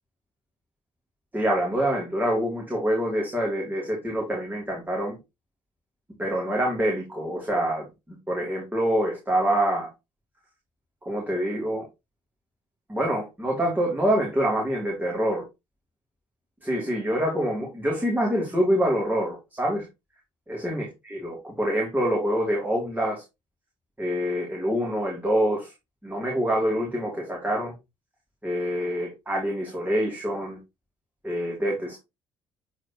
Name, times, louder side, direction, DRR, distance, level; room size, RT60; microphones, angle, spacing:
voice 1, 1.3-5.2 6.2-9.9 11.0-11.8 12.9-15.4 16.6-19.9 20.5-23.2 24.0-25.7 26.0-27.7 28.4-30.6 31.2-32.0, equal, 10° right, -2 dB, 3.2 m, -26 dB
8.7 x 4.4 x 3.1 m, 0.22 s
figure-of-eight pair, 50°, 14 cm